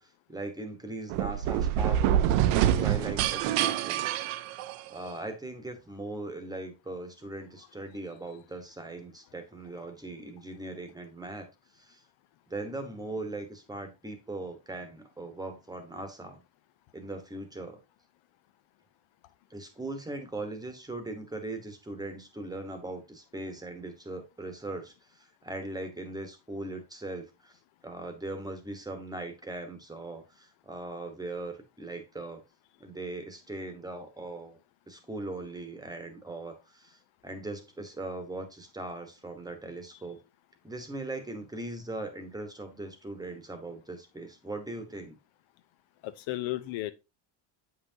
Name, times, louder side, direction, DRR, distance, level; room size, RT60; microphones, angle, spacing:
voice 1, 0.0-4.0 4.9-11.5 11.7-12.0 12.5-16.4 16.9-17.8 19.5-32.4 32.8-34.6 34.9-40.2 40.6-45.2, right 2 dB, 10° right, 1.1 m, -39 dB
sound 1, 1.1-5.1, right 11 dB, 85° right, 0.7 m, -26 dB
voice 2, 46.0-46.9, left 16 dB, 70° left, 0.8 m, -34 dB
8.0 x 5.7 x 2.7 m
cardioid pair, 145°, 49 cm